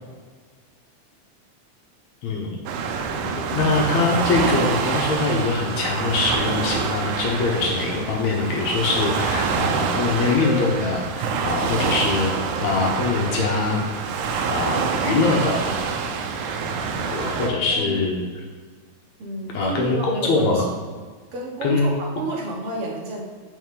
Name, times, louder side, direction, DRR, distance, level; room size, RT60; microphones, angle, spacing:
voice 1, 2.2-2.6 3.3-12.3 12.6-13.8 14.5-15.7 17.1-18.4 19.5-20.6 21.6-21.9, left 3 dB, 70° left, -1 dB, 2.2 m, -23 dB
Waves surf, 2.7-17.5, right 5 dB, 80° right, 2.2 m, -26 dB
sound 1, 10.4-15.4, left 4 dB, 50° left, 2.2 m, -40 dB
voice 2, 17.4-18.0 19.2-20.7 21.3-23.2, right 2 dB, 55° right, -1 dB, 2.1 m, -30 dB
9.1 x 5.5 x 3.8 m, 1.5 s
omnidirectional pair, 3.5 m